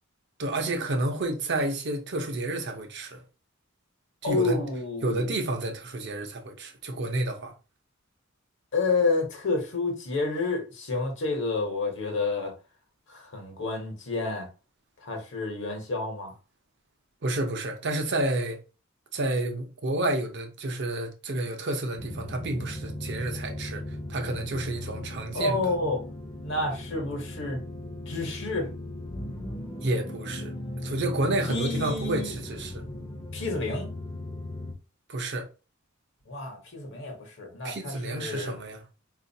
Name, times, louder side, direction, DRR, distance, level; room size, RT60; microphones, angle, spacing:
voice 1, 0.4-3.2 4.2-4.6 5.0-7.5 17.2-18.6 19.1-23.8 24.1-25.6 29.8-30.5 30.8-32.8 35.1-35.5 37.6-38.8, right 2 dB, 55° right, 0.7 m, -30 dB
voice 2, 4.2-5.3 8.7-12.6 13.1-14.5 15.0-16.3 25.3-26.0 26.4-27.6 28.1-28.7 31.5-32.4 33.3-33.9 36.3-38.5, left 3 dB, 60° left, 1.0 m, -29 dB
sound 1, 22.0-34.7, left 1 dB, 25° left, 0.6 m, -37 dB
3.8 x 2.4 x 2.7 m
head